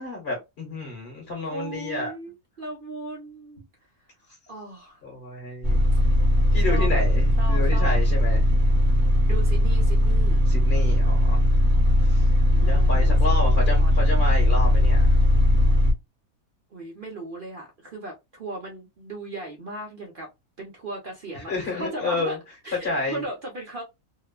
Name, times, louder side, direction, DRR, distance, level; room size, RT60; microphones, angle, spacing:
voice 1, 0.0-2.1 5.0-5.9 6.5-8.4 10.5-11.4 12.0-12.2 12.5-15.2 21.3-22.4 22.8-23.2, left 3 dB, 45° left, 1.2 m, -30 dB
voice 2, 1.4-3.6 4.5-5.0 6.6-7.0 7.4-8.0 9.2-10.4 12.5-14.2 16.7-20.3 20.6-22.4 22.6-23.8, right 2 dB, 50° right, 0.6 m, -37 dB
sound 1, 5.6-15.9, left 1 dB, 15° right, 0.8 m, -19 dB
2.8 x 2.1 x 2.3 m
omnidirectional pair, 1.6 m